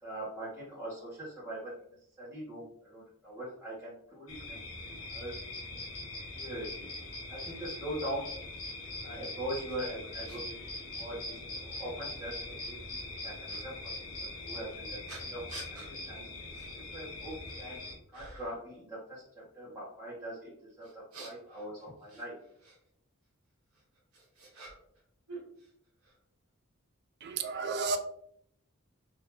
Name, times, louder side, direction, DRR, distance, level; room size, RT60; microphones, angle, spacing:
voice 1, 0.0-1.7 2.2-4.6 5.1-5.3 5.8-5.9 6.3-6.9 7.3-8.3 9.0-13.9 14.2-15.4 15.7-16.3 16.9-17.8 18.1-22.3, right 1 dB, 10° right, -13 dB, 1.2 m, -42 dB
sound 1, 4.3-18.0, left 2 dB, 75° left, 0.9 m, -42 dB
sound 2, 9.7-9.8 10.3-10.4 11.3-11.4 13.5-13.6 15.1-15.9 16.5-16.7 17.2-17.7 18.1-18.6 20.8-22.8 23.7-25.0 25.3-26.1, right 2 dB, 85° right, 1.1 m, -49 dB
voice 2, 27.2-28.0, right 4 dB, 50° right, 8 dB, 0.3 m, -32 dB
3.6 x 2.8 x 2.9 m, 0.70 s
head